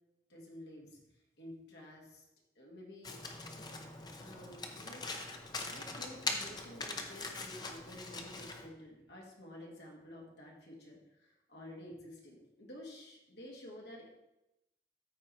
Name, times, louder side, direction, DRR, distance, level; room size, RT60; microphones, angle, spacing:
voice 1, 0.3-1.0 1.4-2.2 2.6-3.2 4.2-5.3 5.7-14.1, left 1 dB, 70° left, -2 dB, 1.9 m, -51 dB
Domestic sounds home sounds, 3.0-8.7, left 3 dB, 25° left, 0.8 m, -42 dB
13.5 x 4.6 x 4.2 m, 0.91 s
head